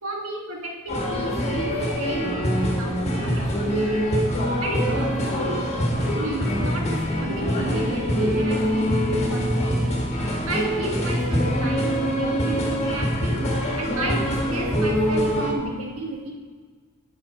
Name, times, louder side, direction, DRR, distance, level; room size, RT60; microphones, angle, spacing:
voice 1, 0.0-4.1 4.5-5.6 6.1-9.8 10.5-13.4 13.8-16.3, right 1 dB, 65° right, 0 dB, 1.7 m, -33 dB
sound 1, 0.9-15.5, equal, 30° left, 1.6 m, -24 dB
10.5 x 6.4 x 4.4 m, 1.5 s
head